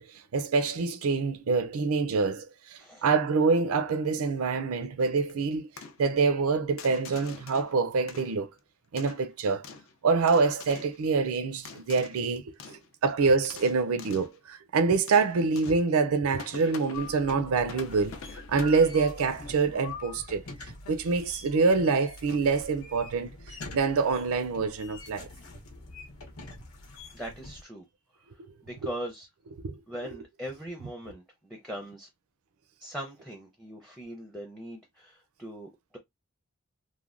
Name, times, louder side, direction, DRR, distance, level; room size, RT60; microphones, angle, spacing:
voice 1, 0.0-5.7 6.0-8.5 8.9-9.6 10.0-18.2 18.5-20.4 20.9-25.3 28.4-28.5 28.8-28.9 29.6-29.8 30.0-30.2, right 4 dB, 75° right, 0.5 m, -26 dB
sound 1, 5.0-5.3 5.8-6.1 6.8-7.8 8.1-8.6 9.0-9.9 10.3-11.0 11.6-12.3 12.6-12.9 13.3-14.4 15.1-15.9 16.4-17.2 17.6-19.2, left 5 dB, 60° left, 0.5 m, -45 dB
sound 2, 16.9-27.6, left 2 dB, 80° left, 0.9 m, -44 dB
voice 2, 27.1-27.8 28.6-29.3 29.9-32.1 32.8-36.0, equal, ahead, 0.5 m, -40 dB
3.2 x 2.1 x 2.4 m
head